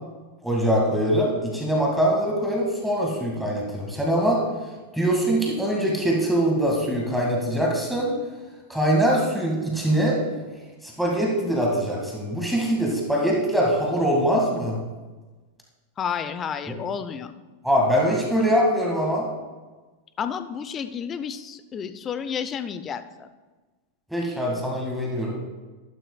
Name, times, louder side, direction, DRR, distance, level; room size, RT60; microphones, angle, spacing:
voice 1, 0.4-4.4 4.9-8.1 8.7-10.2 10.8-14.8 16.7-16.8 17.6-19.3 24.1-25.4, equal, ahead, -2 dB, 2.0 m, -23 dB
voice 2, 16.0-17.3 20.2-23.3, left 7 dB, 25° left, 11 dB, 0.6 m, -31 dB
13.5 x 12.5 x 2.3 m, 1.3 s
figure-of-eight pair, 90°, 0 cm